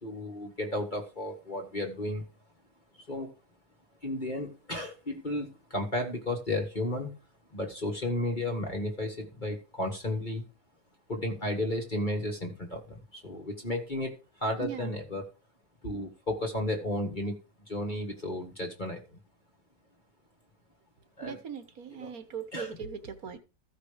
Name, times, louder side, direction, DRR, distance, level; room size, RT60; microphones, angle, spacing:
voice 1, 0.0-2.2 3.1-3.3 4.0-7.1 7.5-10.4 11.1-14.1 14.4-15.2 15.8-17.3 17.7-19.0 21.2-21.4 21.9-22.1 22.5-22.8, left 1 dB, 25° left, 1.6 m, -33 dB
voice 2, 14.6-14.9 21.2-23.4, right 7 dB, 50° right, 1.5 m, -39 dB
14.5 x 5.7 x 5.0 m
omnidirectional pair, 2.2 m